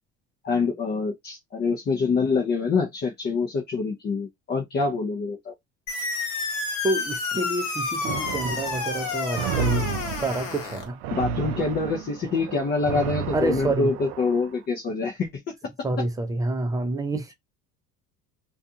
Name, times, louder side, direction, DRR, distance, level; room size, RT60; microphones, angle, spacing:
voice 1, 0.4-5.5 11.1-15.4, left 4 dB, 30° left, 0.6 m, -26 dB
sound 1, 5.9-10.9, left 4 dB, 65° left, 1.2 m, -30 dB
voice 2, 6.8-11.0 13.3-13.9 15.8-17.3, right 2 dB, 10° right, 0.5 m, -28 dB
sound 2, 8.0-14.5, right 6 dB, 85° right, 0.6 m, -32 dB
2.4 x 2.4 x 2.6 m
cardioid pair, 130°, 31 cm